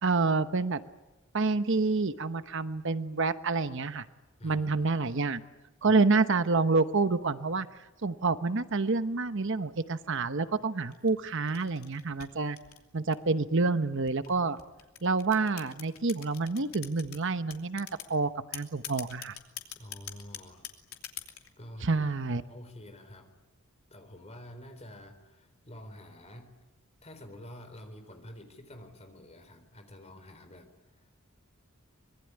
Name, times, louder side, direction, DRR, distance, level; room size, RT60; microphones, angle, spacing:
voice 1, 0.0-0.8 1.3-4.0 4.4-5.4 5.8-12.6 12.9-14.6 15.0-19.4 21.8-22.4, right 3 dB, 55° right, 11 dB, 1.0 m, -28 dB
voice 2, 4.4-4.9 5.8-6.0 19.8-20.7 21.6-22.0 22.5-23.4 23.9-26.6 27.0-30.7 31.0-31.1, left 1 dB, 30° left, 7 dB, 4.0 m, -48 dB
sound 1, 10.9-13.4 14.1-17.2 17.5-18.1 18.5-21.5, left 11 dB, 80° left, 2.9 m, -43 dB
25.0 x 22.0 x 9.9 m, 1.0 s
head